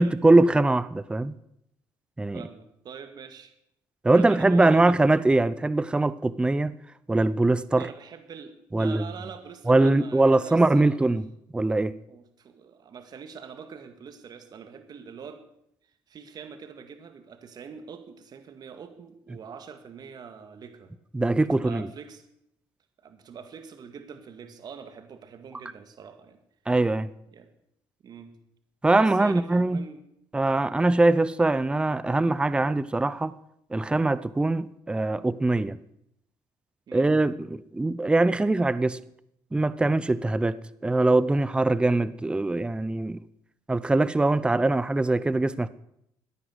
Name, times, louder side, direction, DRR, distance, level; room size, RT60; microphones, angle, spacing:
voice 1, 0.0-1.3 2.2-2.4 4.0-6.7 7.1-7.9 8.7-9.0 9.7-11.3 11.5-11.9 21.1-21.9 26.7-27.1 28.8-29.9 30.3-33.3 33.7-35.8 36.9-39.0 39.5-40.6 40.8-43.2 43.7-45.7, right 2 dB, 10° right, 0.6 m, -22 dB
voice 2, 2.3-3.5 4.1-5.0 7.8-11.1 12.1-15.4 16.1-20.9 21.4-22.3 23.0-26.4 27.3-27.5 28.0-28.3 28.9-30.0 36.9-37.1, right 6 dB, 45° right, 1.9 m, -44 dB
15.0 x 10.0 x 7.9 m
cardioid pair, 100°, 9 cm